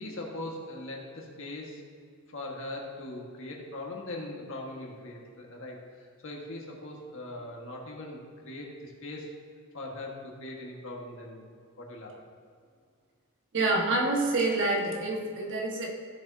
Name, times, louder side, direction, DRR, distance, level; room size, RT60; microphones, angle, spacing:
voice 1, 0.0-1.8 2.3-5.9 6.2-9.3 9.7-11.5 11.8-12.2, left 1 dB, 65° left, -1 dB, 1.7 m, -40 dB
voice 2, 13.5-15.9, right 2 dB, 60° right, -1 dB, 1.6 m, -27 dB
15.0 x 7.1 x 2.8 m, 2.2 s
head